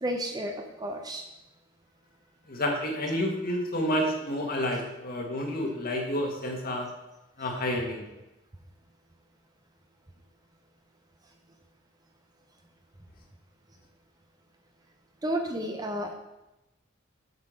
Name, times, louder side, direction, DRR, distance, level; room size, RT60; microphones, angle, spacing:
voice 1, 0.0-1.3 4.7-4.8 7.4-7.5 15.2-16.2, right 1 dB, 20° right, 3 dB, 0.7 m, -32 dB
voice 2, 2.5-6.9 7.4-8.1, left 1 dB, 45° left, 1 dB, 1.7 m, -29 dB
8.2 x 5.9 x 6.3 m, 0.99 s
head